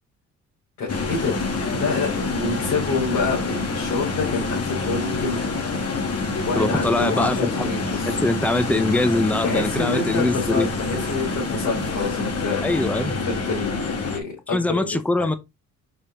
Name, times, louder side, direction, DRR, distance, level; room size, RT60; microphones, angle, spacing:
voice 1, 0.8-1.4 1.7-5.4 6.5-8.2 9.4-12.6 13.2-15.3, left 4 dB, 75° left, 4.0 m, -28 dB
sound 1, 0.9-14.2, left 3 dB, 55° left, 2.4 m, -26 dB
voice 2, 6.5-7.7 8.1-10.7 12.6-13.2 14.5-15.3, left 2 dB, 5° left, 0.9 m, -22 dB
6.5 x 5.4 x 3.7 m
cardioid pair, 90°, 30 cm